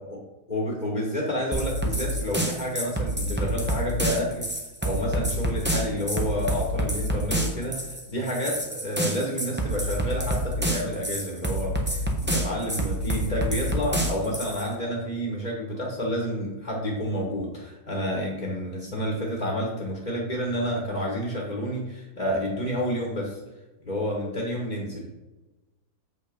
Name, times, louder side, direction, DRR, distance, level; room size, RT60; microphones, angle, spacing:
voice 1, 0.5-4.5 4.8-23.4 23.8-25.1, equal, 25° left, -2 dB, 1.6 m, -29 dB
sound 1, 1.5-14.7, right 1 dB, 10° right, 1.0 m, -27 dB
7.6 x 5.6 x 5.3 m, 1.1 s
omnidirectional pair, 1.7 m